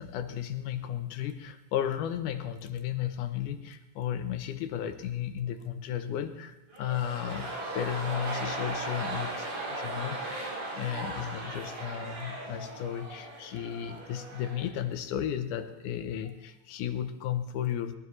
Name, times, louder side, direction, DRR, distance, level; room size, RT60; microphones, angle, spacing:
voice 1, 0.0-10.5 10.7-18.0, left 10 dB, 80° left, 9 dB, 2.2 m, -34 dB
sound 1, 6.7-14.8 15.0-15.1, right 2 dB, 60° right, 4.8 m, -37 dB
20.0 x 12.0 x 3.2 m, 0.91 s
omnidirectional pair, 3.7 m